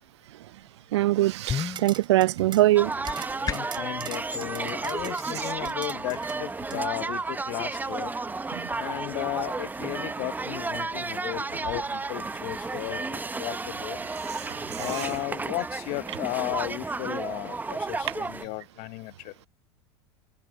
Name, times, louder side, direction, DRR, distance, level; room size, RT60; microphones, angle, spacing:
voice 1, 0.9-2.9 8.5-8.7 14.3-15.1, right 16 dB, 80° right, 0.4 m, -23 dB
sound 1, 1.4-3.9, left 7 dB, 25° left, 1.3 m, -35 dB
sound 2, 1.5-6.8, right 9 dB, 30° right, 4.1 m, -43 dB
sound 3, 2.8-18.5, right 3 dB, 10° right, 0.9 m, -33 dB
voice 2, 3.4-8.1 8.8-14.0 14.8-19.3, left 25 dB, 55° left, 1.0 m, -35 dB
hypercardioid pair, 90°, 14 cm